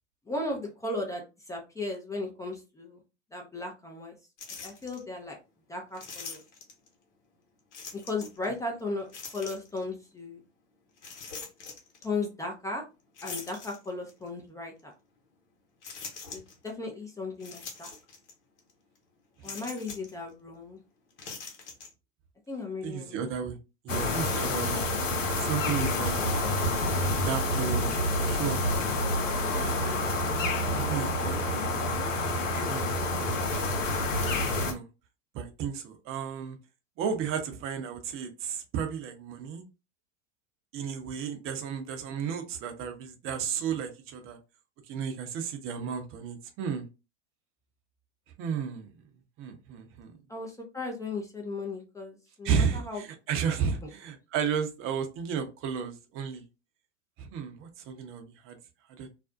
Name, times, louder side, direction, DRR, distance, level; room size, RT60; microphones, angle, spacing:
voice 1, 0.3-3.0 3.3-4.2 4.6-5.4 5.7-6.4 7.9-9.1 9.3-10.4 12.0-12.8 13.2-14.9 16.3-17.9 19.4-20.8 22.5-23.3 50.3-53.0, left 3 dB, 10° left, 0 dB, 0.5 m, -36 dB
sound 1, 4.4-5.0 5.9-6.9 7.7-8.4 9.1-9.8 11.0-12.1 13.2-14.2 14.8-14.9 15.8-16.7 17.4-18.3 18.6-18.7 19.4-20.1 21.1-21.9, left 4 dB, 70° left, 0.9 m, -43 dB
voice 2, 22.8-23.6 23.8-24.8 25.4-26.4 27.2-30.0 30.7-31.8 32.4-33.9 34.4-34.9 35.3-36.6 37.0-39.6 40.7-44.4 44.9-46.9 48.4-48.9 49.4-50.2 52.4-56.4 57.2-58.6 58.9-59.1, right 7 dB, 35° right, 6 dB, 0.6 m, -33 dB
sound 2, 23.9-34.7, left 1 dB, 90° left, 0.6 m, -28 dB
2.4 x 2.0 x 2.5 m, 0.29 s
hypercardioid pair, 90°, 37 cm